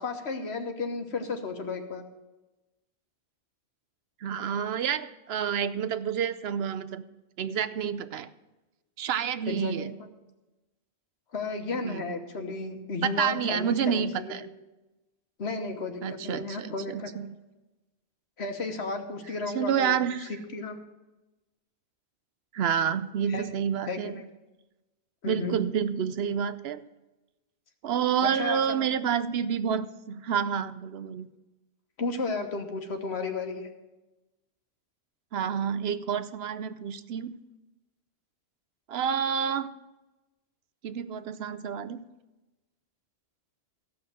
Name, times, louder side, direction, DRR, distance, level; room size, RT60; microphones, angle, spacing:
voice 1, 0.0-2.0 9.5-9.9 11.3-14.4 15.4-17.1 18.4-20.3 20.5-20.8 23.3-23.4 23.9-24.2 25.2-25.6 28.2-28.9 32.0-33.7, left 3 dB, 85° left, 5 dB, 1.6 m, -33 dB
voice 2, 4.2-7.0 7.4-8.3 9.0-9.9 11.8-12.1 13.2-14.4 16.0-17.3 19.5-20.3 22.5-24.2 25.2-26.8 27.8-31.3 35.3-37.4 38.9-39.7 40.8-42.0, right 8 dB, 75° right, 13 dB, 0.9 m, -29 dB
14.5 x 5.9 x 7.5 m, 1.1 s
omnidirectional pair, 1.1 m